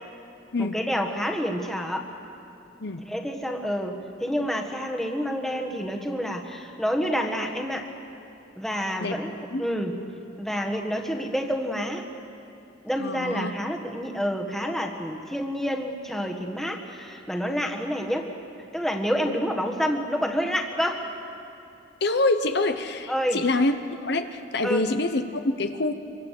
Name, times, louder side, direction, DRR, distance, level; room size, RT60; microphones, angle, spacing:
voice 1, 0.6-2.1 3.0-7.9 8.6-9.3 9.6-10.0 10.4-12.1 12.8-18.3 18.7-21.0 23.1-23.4 24.6-24.8, equal, ahead, 2 dB, 1.5 m, -28 dB
voice 2, 13.0-13.5 19.3-19.4 22.0-25.9, left 2 dB, 60° left, 8 dB, 0.9 m, -26 dB
27.0 x 24.0 x 6.7 m, 2.7 s
head